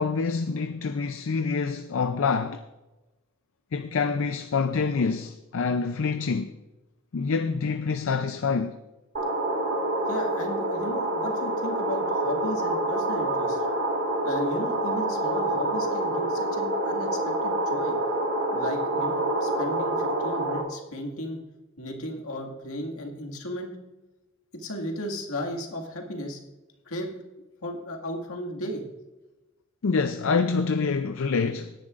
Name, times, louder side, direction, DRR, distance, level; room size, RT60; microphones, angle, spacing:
voice 1, 0.0-2.6 3.7-6.5 7.1-8.8 29.8-31.7, left 5 dB, 70° left, 0.5 m, -26 dB
sound 1, 9.2-20.6, right 1 dB, 60° right, 1.9 m, -27 dB
voice 2, 10.1-13.6 14.2-18.0 18.5-21.4 21.8-23.7 24.5-26.4 26.9-27.1 27.6-28.9, left 1 dB, 85° left, 2.0 m, -35 dB
17.5 x 10.0 x 2.5 m
head